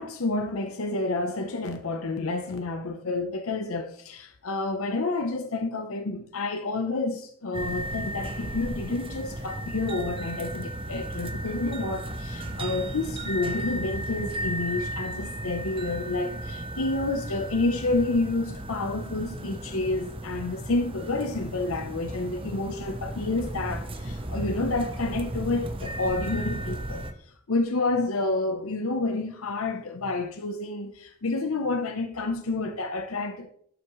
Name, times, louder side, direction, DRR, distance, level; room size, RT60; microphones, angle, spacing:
voice 1, 0.0-27.0 27.5-33.5, left 2 dB, 90° left, 0.8 m, -29 dB
sound 1, 7.5-27.1, right 1 dB, 25° right, 0.7 m, -35 dB
12.0 x 6.0 x 3.1 m
head